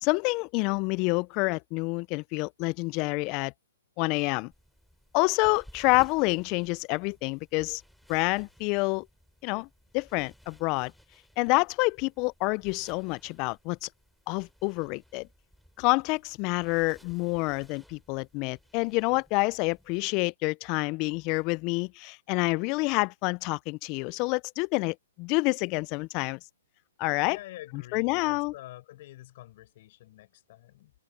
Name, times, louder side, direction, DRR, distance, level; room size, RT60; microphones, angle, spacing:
voice 1, 0.0-3.5 4.0-4.5 5.1-7.8 8.1-9.1 9.4-9.7 9.9-10.9 11.4-13.9 14.3-15.3 15.8-26.4 27.0-27.4 27.9-28.5, left 27 dB, 30° left, 0.4 m, -28 dB
sound 1, 4.5-20.1, equal, ahead, 3.3 m, -58 dB
voice 2, 27.3-30.9, left 16 dB, 50° left, 5.2 m, -47 dB
hypercardioid pair, 145°, 0 cm